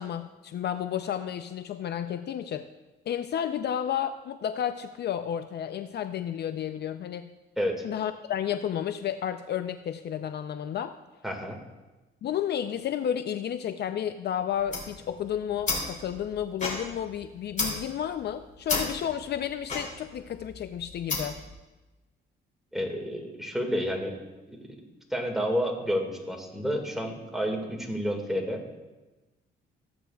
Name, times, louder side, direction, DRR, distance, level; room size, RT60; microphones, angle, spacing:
voice 1, 0.0-2.7 3.1-7.3 7.8-10.9 12.2-21.4, left 9 dB, 55° left, 10 dB, 0.5 m, -32 dB
voice 2, 11.2-11.6 22.7-24.2 24.5-24.7 25.1-28.6, equal, ahead, 1 dB, 1.9 m, -30 dB
sound 1, 14.5-21.5, left 3 dB, 40° left, 2.8 m, -34 dB
15.0 x 8.7 x 2.3 m, 1.1 s
cardioid pair, 90°, 20 cm